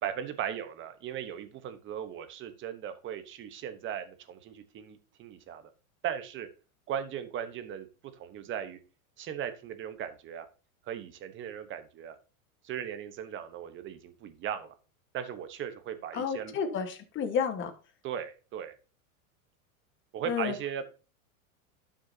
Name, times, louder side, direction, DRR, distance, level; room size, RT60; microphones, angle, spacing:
voice 1, 0.0-5.6 6.0-6.5 6.9-7.9 8.1-8.8 9.2-10.5 10.8-12.2 12.6-14.8 15.1-16.5 18.0-18.7 20.1-20.8, right 9 dB, 30° right, 10 dB, 1.1 m, -37 dB
voice 2, 16.1-17.7 20.3-20.5, left 7 dB, 30° left, 7 dB, 1.5 m, -31 dB
11.5 x 6.4 x 2.8 m, 0.35 s
supercardioid pair, 135°, 42 cm